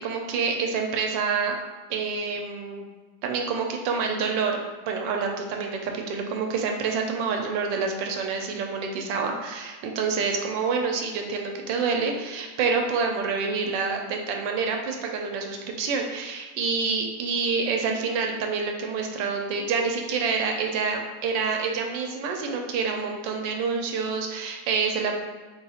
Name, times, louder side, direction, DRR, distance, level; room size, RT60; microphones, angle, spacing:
voice 1, 0.0-1.6 1.9-2.9 3.2-4.6 4.9-25.2, right 5 dB, 80° right, 2 dB, 1.3 m, -27 dB
3.9 x 2.3 x 4.2 m, 1.4 s
omnidirectional pair, 2.0 m